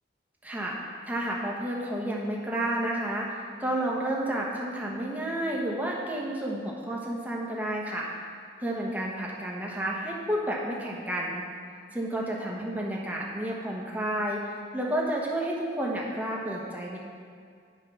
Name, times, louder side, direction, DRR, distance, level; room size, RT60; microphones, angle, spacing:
voice 1, 0.4-0.8 1.0-8.1 8.6-11.4 11.9-17.0, right 1 dB, 10° right, -3 dB, 1.0 m, -31 dB
9.0 x 4.8 x 5.8 m, 2.1 s
head